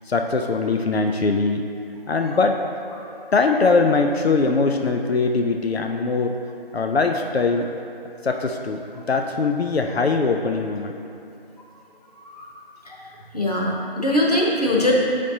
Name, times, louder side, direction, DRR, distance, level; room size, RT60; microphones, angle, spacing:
voice 1, 0.1-1.6 2.1-2.6 3.3-6.4 6.7-7.7 8.2-10.9, left 4 dB, 90° left, 4 dB, 0.6 m, -21 dB
voice 2, 3.0-3.3 12.2-12.5 12.9-13.1 13.3-14.9, left 1 dB, 40° left, -3 dB, 0.9 m, -22 dB
7.6 x 5.1 x 2.8 m, 2.6 s
figure-of-eight pair, 170°, 30 cm